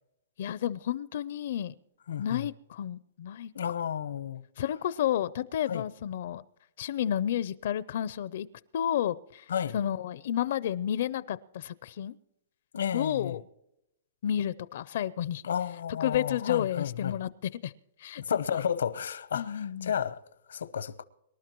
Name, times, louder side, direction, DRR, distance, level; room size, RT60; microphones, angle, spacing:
voice 1, 0.4-1.7 2.2-3.5 4.6-6.4 6.8-8.5 8.7-9.5 9.7-12.1 12.9-13.4 14.2-15.4 16.0-17.3 17.6-17.7 18.0-18.2 19.3-19.9, left 10 dB, 50° left, 0.4 m, -31 dB
voice 2, 2.1-2.5 3.5-4.4 5.7-5.8 9.5-9.8 12.7-13.3 15.4-17.2 18.2-20.2 20.5-21.0, left 8 dB, 85° left, 0.8 m, -32 dB
25.0 x 12.0 x 3.0 m
hypercardioid pair, 170°, 0 cm